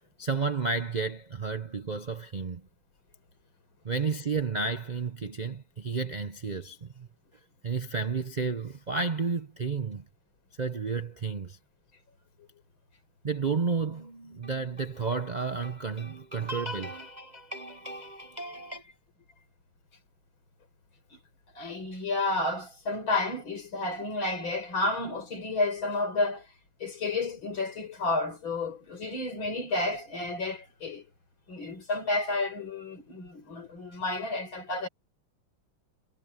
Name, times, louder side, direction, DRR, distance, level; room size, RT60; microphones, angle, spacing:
voice 1, 0.2-2.6 3.8-7.1 7.6-10.1 10.6-11.6 13.2-18.9, right 4 dB, 80° right, 0.4 m, -32 dB
voice 2, 21.5-26.5 26.8-31.1 31.5-34.9, left 2 dB, 75° left, 6.1 m, -31 dB
omnidirectional pair, 2.2 m